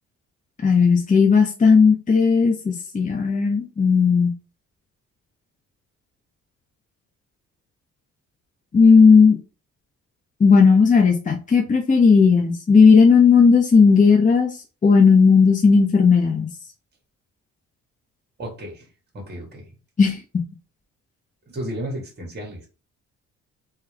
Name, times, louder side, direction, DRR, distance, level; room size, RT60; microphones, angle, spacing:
voice 1, 0.6-4.4 8.7-9.4 10.4-16.5 20.0-20.2, left 5 dB, 25° left, 1 dB, 0.8 m, -15 dB
voice 2, 18.4-18.9 19.1-19.7 21.5-22.7, right 1 dB, 35° right, 1 dB, 1.9 m, -33 dB
3.4 x 3.1 x 3.4 m, 0.33 s
cardioid pair, 90°, 30 cm